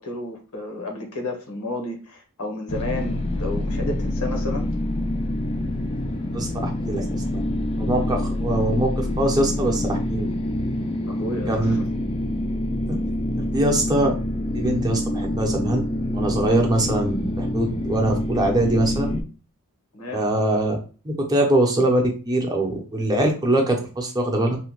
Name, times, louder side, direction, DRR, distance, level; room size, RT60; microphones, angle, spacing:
voice 1, 0.0-4.7 11.1-11.9 19.9-20.2, left 2 dB, 90° left, 3 dB, 0.9 m, -32 dB
sound 1, 2.7-19.2, left 1 dB, 25° left, 0.4 m, -26 dB
voice 2, 6.3-7.4 7.8-10.2 11.5-11.8 12.9-13.0 13.5-14.1 14.5-15.8 16.1-19.1 20.1-20.7 21.0-24.6, right 1 dB, 20° right, 1 dB, 0.6 m, -22 dB
2.7 x 2.2 x 3.0 m, 0.36 s
head